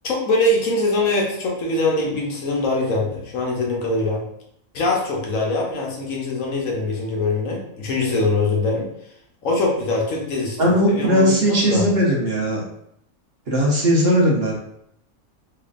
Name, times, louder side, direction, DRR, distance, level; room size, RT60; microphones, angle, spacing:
voice 1, 0.0-4.2 4.7-8.9 9.4-10.6 10.9-11.9, left 2 dB, 75° left, -1 dB, 1.2 m, -22 dB
voice 2, 10.6-12.6 13.5-14.5, equal, 50° right, -3 dB, 1.0 m, -18 dB
3.8 x 3.1 x 2.4 m, 0.74 s
omnidirectional pair, 1.4 m